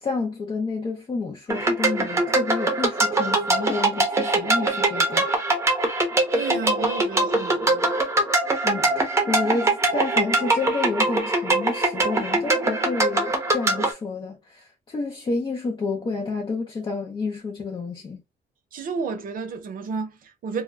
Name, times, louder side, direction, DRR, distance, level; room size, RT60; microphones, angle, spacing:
voice 1, 0.0-5.3 8.6-18.2, left 4 dB, 30° left, 0.6 m, -30 dB
sound 1, 1.5-13.9, right 2 dB, 15° right, 0.7 m, -22 dB
voice 2, 6.3-7.9 18.7-20.6, right 5 dB, 55° right, 0.7 m, -32 dB
2.2 x 2.1 x 3.4 m
cardioid pair, 130°, 17 cm